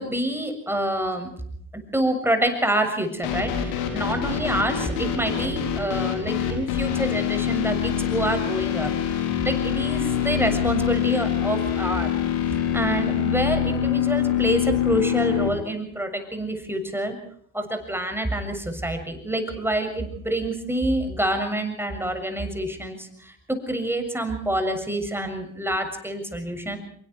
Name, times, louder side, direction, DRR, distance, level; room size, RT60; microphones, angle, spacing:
voice 1, 0.0-1.4 1.7-12.1 12.7-17.2 17.5-26.8, right 1 dB, 5° right, 6 dB, 7.1 m, -27 dB
sound 1, 3.2-15.5, left 9 dB, 85° left, 4.3 m, -25 dB
26.0 x 23.0 x 4.8 m, 0.63 s
hypercardioid pair, 60°, 40 cm